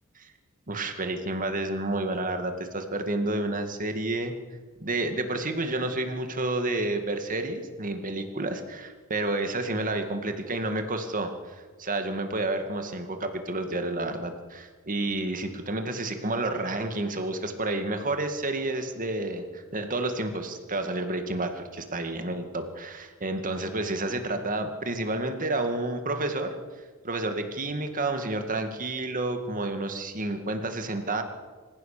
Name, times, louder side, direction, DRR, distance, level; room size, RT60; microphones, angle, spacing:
voice 1, 0.7-4.3 4.8-26.6 27.0-31.2, right 2 dB, 40° right, 6 dB, 2.2 m, -30 dB
25.5 x 15.5 x 6.8 m, 1.4 s
head